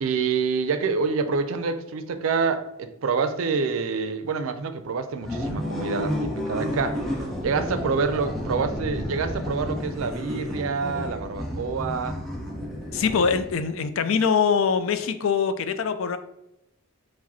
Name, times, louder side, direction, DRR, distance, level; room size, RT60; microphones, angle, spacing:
voice 1, 0.0-7.0 7.4-12.2, right 5 dB, 90° right, 10 dB, 0.4 m, -27 dB
sound 1, 5.2-13.8, left 1 dB, ahead, 0.9 m, -31 dB
voice 2, 12.9-16.2, left 6 dB, 80° left, 11 dB, 0.4 m, -23 dB
4.8 x 2.1 x 4.1 m, 0.88 s
head